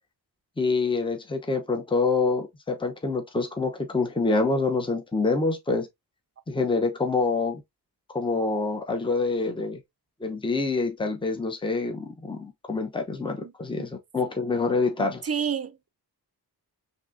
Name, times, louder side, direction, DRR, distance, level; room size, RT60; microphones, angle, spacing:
voice 1, 0.6-5.9 6.5-7.6 8.1-9.8 10.2-15.2, left 3 dB, 15° left, 0.7 m, -26 dB
voice 2, 15.0-15.9, right 7 dB, 40° right, 0.5 m, -30 dB
5.8 x 2.7 x 2.5 m
wide cardioid pair, 105°, 40 cm